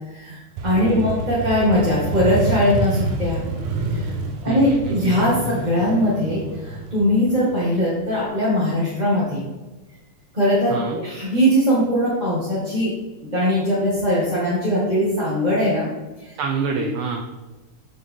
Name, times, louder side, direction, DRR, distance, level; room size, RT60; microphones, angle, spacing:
voice 1, 0.1-3.5 3.9-4.1 4.4-9.4 10.3-12.9 13.2-15.9 16.2-16.4, equal, 15° right, -8 dB, 1.7 m, -20 dB
Motorcycle, 0.6-8.2, right 3 dB, 90° right, 2.6 m, -28 dB
voice 2, 0.8-1.2 4.5-5.1 10.7-11.0 16.4-17.2, right 5 dB, 75° right, 2 dB, 1.5 m, -27 dB
8.9 x 7.6 x 3.7 m, 1.2 s
omnidirectional pair, 3.5 m